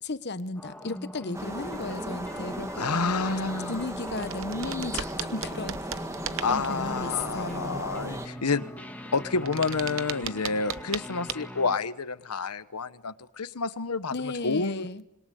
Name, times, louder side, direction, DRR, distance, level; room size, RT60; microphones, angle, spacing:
voice 1, 0.0-2.8 3.7-6.1 6.5-7.8 14.1-15.0, left 3 dB, 50° left, 13 dB, 1.0 m, -35 dB
sound 1, 0.6-11.8, equal, 5° left, 1.8 m, -41 dB
sound 2, 1.3-8.3, right 1 dB, 15° right, 1.6 m, -37 dB
voice 2, 2.8-3.7 6.4-8.6 9.1-14.9, left 4 dB, 90° left, 14 dB, 1.1 m, -29 dB
sound 3, 3.7-3.8 4.1-6.9 9.1-11.0 11.3-11.4, right 8 dB, 60° right, 1.1 m, -36 dB
26.5 x 22.0 x 9.3 m, 0.92 s
head